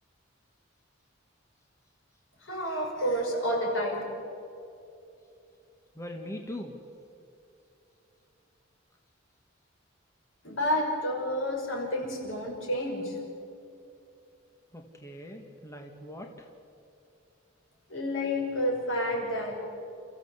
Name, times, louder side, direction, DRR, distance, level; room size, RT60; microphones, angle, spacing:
voice 1, 2.4-4.0 10.4-13.2 17.9-19.5, equal, 75° left, 0 dB, 6.0 m, -30 dB
voice 2, 5.9-6.8 14.7-16.5, left 1 dB, 15° left, 2 dB, 1.7 m, -41 dB
28.5 x 15.0 x 8.2 m, 2.7 s
head